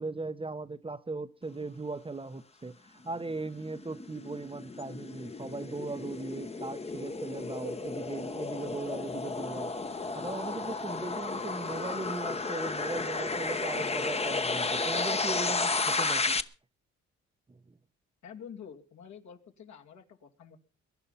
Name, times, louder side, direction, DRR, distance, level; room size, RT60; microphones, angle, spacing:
voice 1, 0.0-9.7 10.0-16.4 17.5-17.8, right 3 dB, 20° right, 0.8 m, -38 dB
sound 1, 3.2-16.4, left 3 dB, 20° left, 1.0 m, -33 dB
voice 2, 18.2-20.6, left 7 dB, 70° left, 2.6 m, -48 dB
22.5 x 10.5 x 5.7 m
cardioid pair, 90°, 30 cm